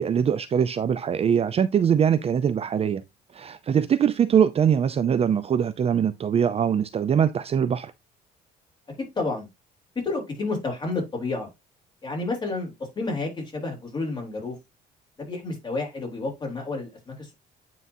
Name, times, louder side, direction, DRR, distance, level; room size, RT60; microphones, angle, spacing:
voice 1, 0.0-3.0 3.3-7.9, right 8 dB, 35° right, 0.5 m, -22 dB
voice 2, 9.0-9.5 10.0-11.5 12.0-14.6 15.2-17.3, left 3 dB, 25° left, 3.5 m, -30 dB
9.3 x 3.9 x 2.7 m
cardioid pair, 110°, 17 cm